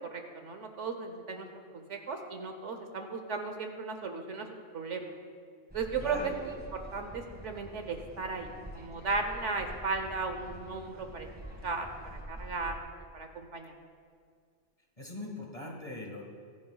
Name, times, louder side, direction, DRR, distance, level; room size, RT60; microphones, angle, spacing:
voice 1, 0.1-1.5 1.7-4.5 4.7-5.1 5.7-6.6 6.9-11.3 11.6-12.8 13.1-13.7, right 4 dB, 70° right, 5 dB, 1.3 m, -36 dB
sound 1, 5.7-12.8, equal, 10° right, 1.5 m, -46 dB
voice 2, 6.0-6.3 15.0-16.2, left 1 dB, 30° left, -1 dB, 1.7 m, -41 dB
23.0 x 10.5 x 2.4 m, 2.1 s
omnidirectional pair, 1.3 m